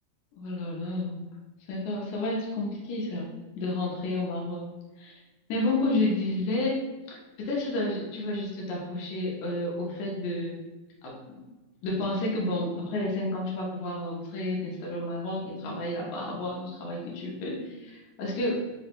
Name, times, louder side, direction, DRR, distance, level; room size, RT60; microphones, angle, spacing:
voice 1, 0.4-1.2 1.7-3.3 3.6-4.7 5.0-5.2 5.5-10.6 11.0-11.4 11.8-18.6, left 2 dB, 85° left, -3 dB, 2.2 m, -31 dB
4.9 x 2.1 x 4.5 m, 1.2 s
omnidirectional pair, 3.4 m